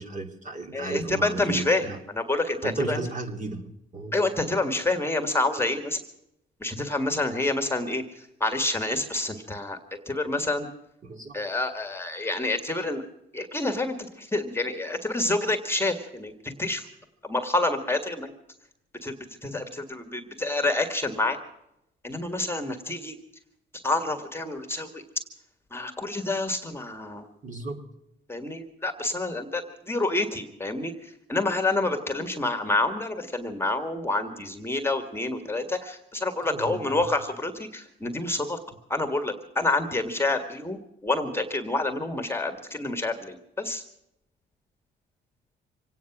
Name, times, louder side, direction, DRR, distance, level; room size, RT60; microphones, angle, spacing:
voice 1, 0.0-2.0 2.6-4.2 11.0-11.3 27.4-27.8 36.4-37.1, right 2 dB, 40° right, 3 dB, 3.1 m, -34 dB
voice 2, 0.7-3.0 4.1-6.0 6.6-8.0 8.4-9.8 10.1-10.7 11.3-13.0 13.3-16.3 16.6-16.8 17.2-18.3 19.0-19.1 19.4-21.4 22.0-23.1 23.8-25.0 25.7-27.2 28.3-30.9 31.3-38.6 38.9-43.8, left 2 dB, 10° left, 5 dB, 1.8 m, -28 dB
25.5 x 9.4 x 5.9 m, 0.84 s
cardioid pair, 90°, 20 cm